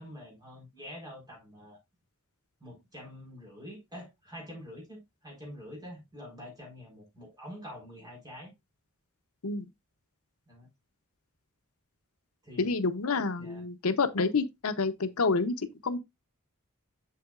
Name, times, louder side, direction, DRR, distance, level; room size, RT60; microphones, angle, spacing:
voice 1, 0.0-1.8 2.6-8.5 10.5-10.7 12.4-12.8 13.4-13.6, equal, 20° right, 4.3 m, -46 dB
voice 2, 12.6-16.0, left 4 dB, 75° left, 0.8 m, -28 dB
7.6 x 7.2 x 2.4 m
head